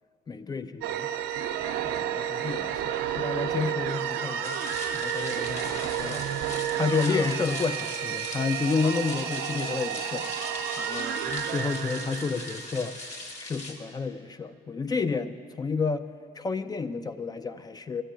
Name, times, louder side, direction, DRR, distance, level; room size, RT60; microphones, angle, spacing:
voice 1, 0.3-1.1 1.8-4.6 4.9-6.3 6.8-10.3 10.8-12.9 13.4-16.1 16.4-18.0, left 5 dB, 25° left, 11 dB, 0.4 m, -30 dB
sound 1, 0.8-13.3, right 9 dB, 85° right, 0.7 m, -31 dB
sound 2, 4.4-13.7, left 2 dB, 40° left, 1.8 m, -40 dB
Ringtone, 11.0-12.2, right 10 dB, 45° right, 0.5 m, -42 dB
11.5 x 7.3 x 8.9 m, 2.1 s
cardioid pair, 110°, 17 cm